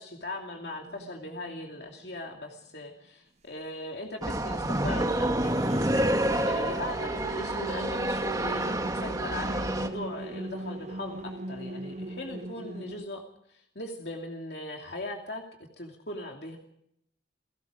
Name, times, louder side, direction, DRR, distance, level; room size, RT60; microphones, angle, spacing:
voice 1, 0.0-5.6 6.0-15.4 15.8-16.6, left 1 dB, 60° left, 1 dB, 2.7 m, -39 dB
sound 1, 0.5-2.4 5.4-13.0, right 1 dB, 35° right, 0.7 m, -39 dB
sound 2, 4.2-9.9, right 1 dB, 20° right, 1.8 m, -28 dB
29.5 x 18.0 x 5.1 m, 0.72 s
head